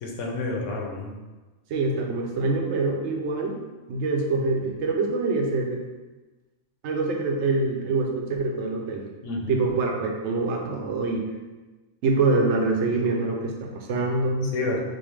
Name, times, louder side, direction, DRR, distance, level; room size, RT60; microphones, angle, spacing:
voice 1, 0.0-1.2 9.2-9.6 14.5-14.8, left 2 dB, 85° left, 0 dB, 1.0 m, -29 dB
voice 2, 1.7-3.6 3.9-5.8 6.8-9.0 9.5-11.3 12.0-14.5, right 3 dB, 75° right, 1 dB, 0.9 m, -25 dB
5.2 x 2.1 x 3.1 m, 1.2 s
omnidirectional pair, 1.2 m